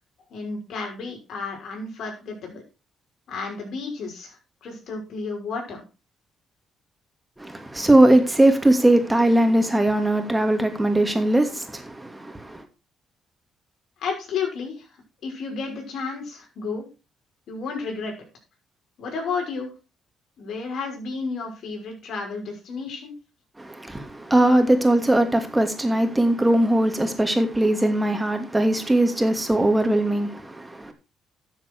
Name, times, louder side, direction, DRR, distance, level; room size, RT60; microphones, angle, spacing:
voice 1, 0.3-2.6 3.3-5.8 14.0-14.9 15.2-16.9 17.5-18.1 19.0-19.7 20.4-23.1, left 4 dB, 70° left, 5.8 m, -32 dB
voice 2, 7.4-12.6 23.6-30.9, right 1 dB, 10° right, 2.6 m, -20 dB
12.5 x 7.5 x 4.7 m
cardioid pair, 90°, 0 cm